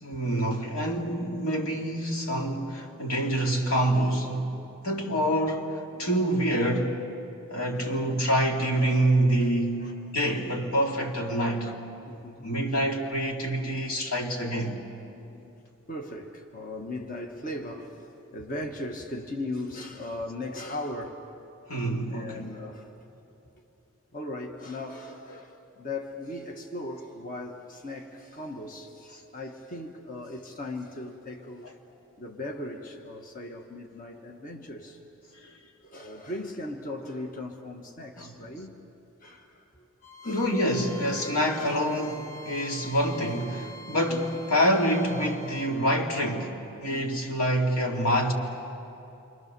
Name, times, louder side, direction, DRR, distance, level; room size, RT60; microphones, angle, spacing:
voice 1, 0.0-4.6 4.8-5.7 6.0-7.0 7.5-11.7 12.4-14.8 21.7-22.5 35.4-35.5 38.2-38.3 40.2-48.3, equal, 85° left, 2.6 m, -26 dB
voice 2, 12.0-12.5 15.1-21.3 22.1-23.1 23.5-23.6 24.1-31.7 32.2-35.0 35.8-38.9 39.2-39.9 40.2-40.5 41.5-41.8 44.0-44.2 46.9-47.3, left 1 dB, 40° left, 1.4 m, -38 dB
Bowed string instrument, 40.0-45.8, equal, 65° left, 2.4 m, -45 dB
28.0 x 25.0 x 6.8 m
head